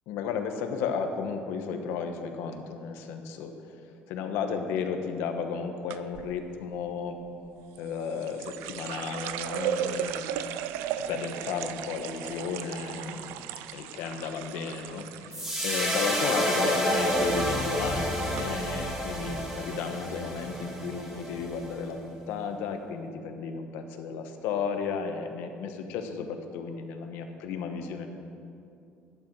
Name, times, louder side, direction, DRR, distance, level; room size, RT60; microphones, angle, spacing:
voice 1, 0.1-3.8 4.1-7.2 7.8-10.3 11.0-28.1, left 6 dB, 80° left, 6 dB, 1.2 m, -34 dB
Glas get filled with water in Sink, 5.9-6.3 7.8-15.7 16.0-16.6 16.9-17.3 17.9-18.0 18.4-18.5, right 10 dB, 85° right, 0.5 m, -36 dB
sound 1, 15.3-21.7, equal, 10° right, 1.8 m, -29 dB
11.5 x 11.5 x 4.7 m, 2.6 s
cardioid pair, 160°, 4 cm